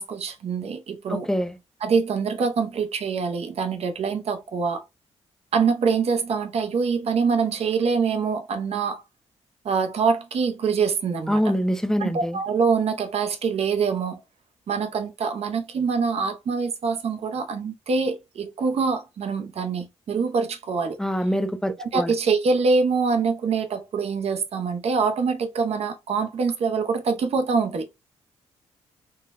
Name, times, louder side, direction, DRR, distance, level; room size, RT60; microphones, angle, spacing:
voice 1, 0.0-1.3 1.8-4.8 5.5-9.0 9.6-11.4 12.0-14.2 14.7-21.0 21.8-27.9, right 5 dB, 65° right, 0.7 m, -24 dB
voice 2, 1.1-1.6 11.3-12.4 21.0-22.1, equal, 5° left, 0.4 m, -25 dB
3.7 x 2.1 x 2.5 m
cardioid pair, 65°, 11 cm